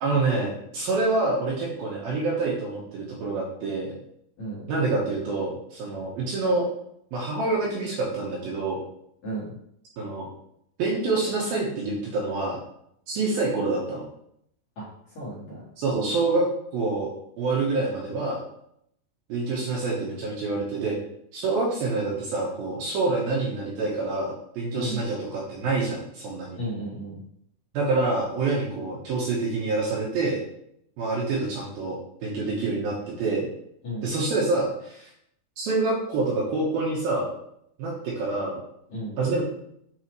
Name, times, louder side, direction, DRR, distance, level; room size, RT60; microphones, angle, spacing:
voice 1, 0.0-3.9 4.7-6.7 7.1-8.8 10.0-10.3 10.8-12.6 13.1-14.1 15.8-17.1 17.4-18.4 19.3-20.9 21.3-26.6 27.7-30.4 31.0-33.5 34.0-35.1 35.6-37.3 37.8-38.6 39.2-39.4, right 3 dB, 70° right, -4 dB, 2.5 m, -27 dB
voice 2, 9.2-9.5 14.8-15.6 24.7-25.0 26.6-27.2 33.8-34.1 38.9-39.2, equal, 50° left, -8 dB, 2.4 m, -34 dB
8.7 x 4.1 x 3.1 m, 0.73 s
omnidirectional pair, 5.2 m